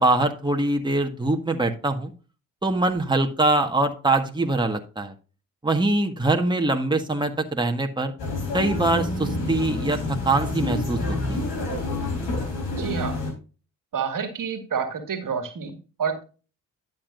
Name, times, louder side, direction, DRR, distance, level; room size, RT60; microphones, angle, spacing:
voice 1, 0.0-2.1 2.6-5.1 5.6-8.1 8.5-10.0 10.2-11.4, right 2 dB, 10° right, 4 dB, 1.6 m, -23 dB
sound 1, 8.2-13.3, left 2 dB, 80° left, 3.9 m, -28 dB
voice 2, 12.8-13.2 13.9-16.2, right 6 dB, 55° right, 8 dB, 2.1 m, -29 dB
11.5 x 7.5 x 2.6 m, 0.34 s
hypercardioid pair, 45°, 38 cm